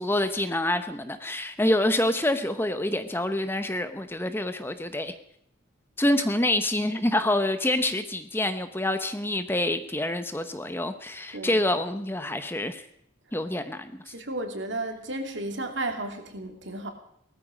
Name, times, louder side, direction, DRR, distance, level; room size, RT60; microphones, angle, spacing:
voice 1, 0.0-5.2 6.0-12.8 13.3-14.1, left 1 dB, 10° left, 9 dB, 0.9 m, -27 dB
voice 2, 14.1-16.9, right 2 dB, 60° right, 5 dB, 2.8 m, -33 dB
19.0 x 14.0 x 5.1 m, 0.73 s
head